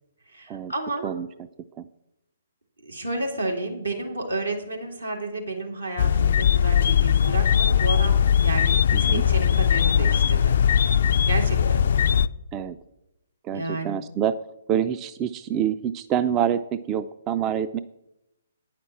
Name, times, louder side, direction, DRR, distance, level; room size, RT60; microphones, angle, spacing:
voice 1, 0.3-1.1 2.8-10.5 11.3-11.8 13.5-14.0, right 2 dB, 85° right, 1 dB, 2.3 m, -31 dB
sound 1, 6.0-12.3, left 8 dB, 55° left, 0.3 m, -20 dB
voice 2, 8.9-9.2 12.5-12.8 13.4-14.4 14.7-17.8, right 9 dB, 25° right, 13 dB, 0.3 m, -26 dB
9.4 x 5.9 x 7.3 m, 0.87 s
figure-of-eight pair, 130°, 0 cm